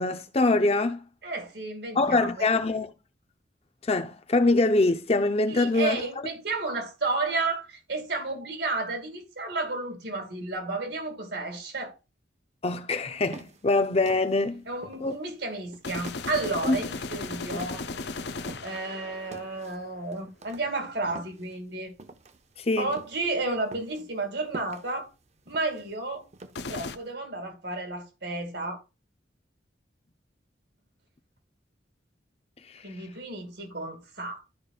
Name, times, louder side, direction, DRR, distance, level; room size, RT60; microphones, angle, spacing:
voice 1, 0.0-1.0 2.0-2.9 3.8-6.0 12.6-14.7 15.0-15.1 16.6-16.8 17.5-17.6 22.6-22.9 32.7-32.8, left 2 dB, 35° left, 0.6 m, -24 dB
voice 2, 1.2-2.5 5.5-12.0 14.7-18.2 18.6-21.9 22.8-25.1 25.5-26.3 26.7-28.8 32.8-34.4, right 3 dB, 65° right, 2.3 m, -32 dB
sound 1, 13.2-18.9 19.3-27.0, right 2 dB, 35° right, 0.7 m, -47 dB
sound 2, 15.8-19.9 26.5-27.0, left 3 dB, 65° left, 0.7 m, -36 dB
12.5 x 5.3 x 2.4 m
head